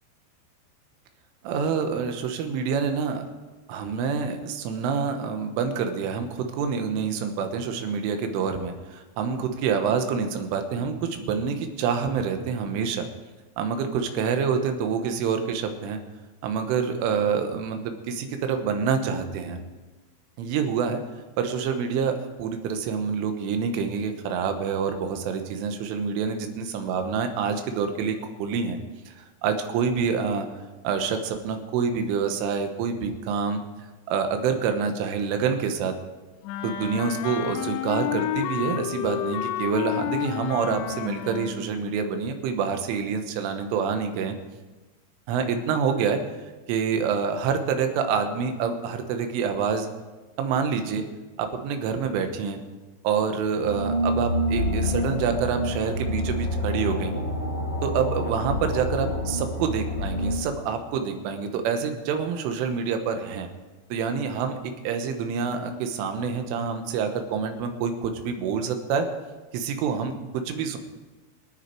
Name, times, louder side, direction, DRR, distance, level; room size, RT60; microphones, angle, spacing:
voice 1, 1.4-3.3 3.7-13.1 13.6-16.0 16.4-19.6 20.4-21.0 21.4-28.8 29.1-30.5 30.8-33.6 34.1-35.9 36.6-44.4 45.3-46.2 46.7-49.9 50.4-51.0 51.4-52.6 53.0-57.1 57.8-63.5 63.9-69.1 69.5-70.8, right 6 dB, 90° right, 6 dB, 3.8 m, -27 dB
Wind instrument woodwind instrument, 36.4-41.7, left 12 dB, 85° left, 2.8 m, -30 dB
sound 1, 53.6-60.4, equal, 35° left, 3.4 m, -27 dB
24.0 x 9.6 x 4.6 m, 1.2 s
omnidirectional pair, 5.5 m